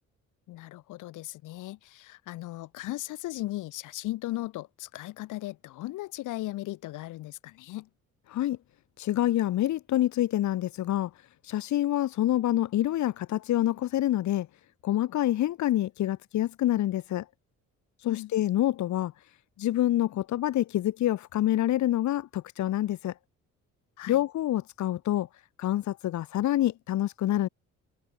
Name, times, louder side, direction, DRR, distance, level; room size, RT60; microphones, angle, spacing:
voice 1, 0.5-7.9 18.0-18.3 24.0-24.2, left 17 dB, 90° left, 1.6 m, -37 dB
voice 2, 9.0-11.1 11.4-14.5 14.8-17.2 18.0-19.1 19.6-23.1 24.1-25.3 25.6-27.5, left 13 dB, 70° left, 1.0 m, -27 dB
cardioid pair, 90°, 30 cm